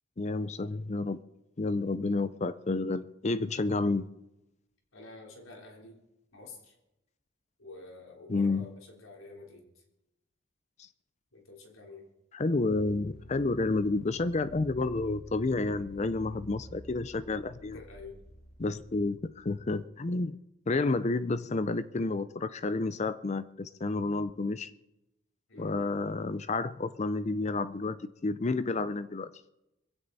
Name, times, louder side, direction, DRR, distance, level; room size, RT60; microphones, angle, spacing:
voice 1, 0.2-1.2 1.6-4.0 8.3-8.7 10.8-10.9 12.3-17.8 18.6-20.4 20.7-24.7 25.6-29.3, left 3 dB, 35° left, 14 dB, 0.5 m, -30 dB
voice 2, 4.9-6.0 6.3-6.8 7.6-9.8 11.3-12.1 17.7-18.2 25.5-25.8, left 3 dB, 80° left, 0 dB, 3.7 m, -49 dB
sound 1, 12.6-19.8, equal, 50° left, 1.9 m, -51 dB
21.5 x 16.0 x 4.1 m, 0.94 s
head